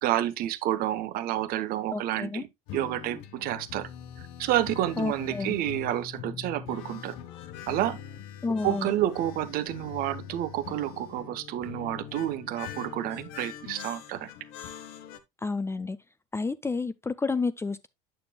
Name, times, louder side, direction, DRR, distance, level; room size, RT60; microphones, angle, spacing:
voice 1, 0.0-2.4 2.7-3.9 4.4-7.2 7.7-8.0 8.6-14.3, right 13 dB, 55° right, 0.8 m, -29 dB
voice 2, 1.9-2.4 5.0-5.6 8.4-8.9 15.4-16.0 16.3-17.9, left 4 dB, 15° left, 0.4 m, -30 dB
sound 1, 2.7-15.2, left 9 dB, 65° left, 0.9 m, -42 dB
8.8 x 6.8 x 2.2 m
hypercardioid pair, 75°, 18 cm